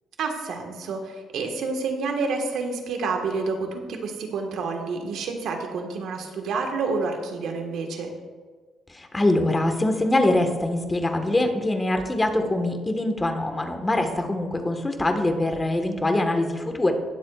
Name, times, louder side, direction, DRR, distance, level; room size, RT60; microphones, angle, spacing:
voice 1, 0.2-8.1, right 4 dB, 75° right, 3 dB, 1.6 m, -29 dB
voice 2, 8.9-16.9, left 1 dB, 20° left, 5 dB, 1.5 m, -23 dB
19.0 x 7.6 x 2.5 m, 1.4 s
cardioid pair, 90°, 0 cm